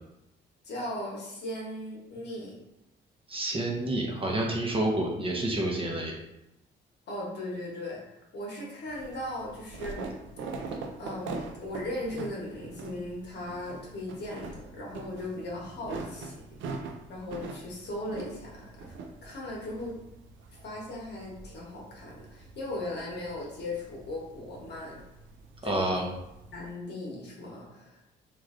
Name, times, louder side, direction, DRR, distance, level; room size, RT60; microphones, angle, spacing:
voice 1, 0.6-2.6 7.1-8.0 8.3-10.1 11.0-16.4 16.7-18.9 19.2-20.0 20.6-25.0 25.6-25.9 26.5-28.0, left 1 dB, 60° left, -3 dB, 1.0 m, -38 dB
voice 2, 3.3-6.2 25.6-26.1, right 1 dB, 25° right, -1 dB, 0.6 m, -29 dB
sound 1, 8.9-26.7, right 3 dB, 75° right, 0.4 m, -43 dB
3.2 x 2.5 x 2.4 m, 0.87 s
cardioid pair, 90°, 20 cm